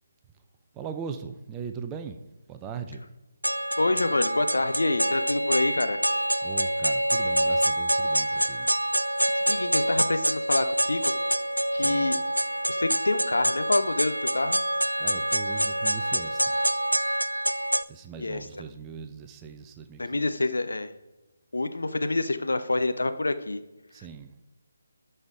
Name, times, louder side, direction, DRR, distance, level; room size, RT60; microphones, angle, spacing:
voice 1, 0.7-2.2 2.5-3.1 6.4-8.7 11.8-12.1 15.0-16.6 17.9-20.3 23.9-24.3, right 6 dB, 15° right, 7 dB, 0.6 m, -39 dB
sound 1, 3.4-17.8, right 1 dB, 85° right, 0.4 m, -26 dB
voice 2, 3.8-6.1 9.5-11.1 11.7-12.2 12.7-14.6 18.2-18.6 20.0-20.9 21.5-23.6, left 2 dB, 65° left, 9 dB, 0.8 m, -27 dB
13.0 x 5.6 x 3.7 m, 1.1 s
figure-of-eight pair, 150°, 0 cm